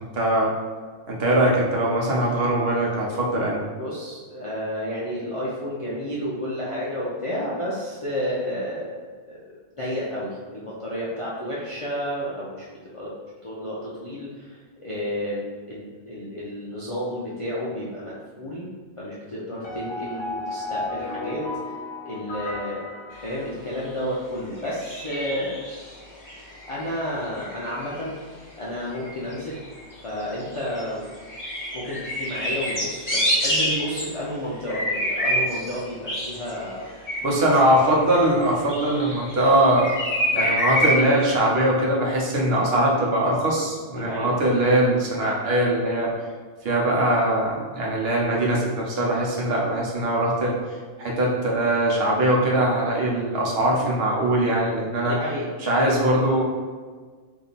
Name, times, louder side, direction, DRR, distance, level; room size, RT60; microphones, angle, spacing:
voice 1, 0.1-0.5 1.1-3.6 37.2-39.9 40.3-46.1 46.6-50.5 51.0-55.1 55.6-56.4, right 1 dB, 65° right, -2 dB, 1.0 m, -21 dB
voice 2, 3.8-9.0 9.3-9.4 9.8-12.6 12.9-13.1 13.4-18.7 19.0-21.4 22.0-22.9 23.2-25.6 26.6-28.2 28.6-29.6 30.0-31.1 31.7-36.9 42.5-42.7 44.0-44.3 54.2-54.3 55.1-55.5, equal, 35° left, -8 dB, 0.5 m, -31 dB
sound 1, 19.6-23.9, left 3 dB, 70° left, 1.1 m, -34 dB
sound 2, 23.7-23.9 24.6-25.9 26.2-27.0 27.3-28.1 28.9-29.9 30.2-30.8 31.1-34.1 34.7-35.8 36.1-39.4 39.8-40.9, equal, 20° left, 1.1 m, -27 dB
3.5 x 2.8 x 4.0 m, 1.5 s
omnidirectional pair, 1.1 m